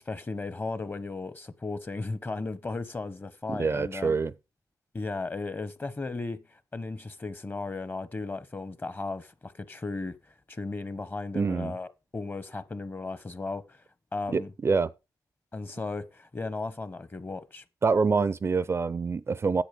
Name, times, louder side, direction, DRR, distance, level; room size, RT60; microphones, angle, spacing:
voice 1, 0.0-4.2 4.9-10.2 10.5-13.8 14.1-14.5 15.5-17.6, left 3 dB, 25° left, 1.0 m, -35 dB
voice 2, 3.5-4.3 11.3-11.7 14.3-14.9 17.8-19.6, right 4 dB, 35° right, 0.5 m, -26 dB
10.0 x 8.0 x 5.0 m
cardioid pair, 90°, 7 cm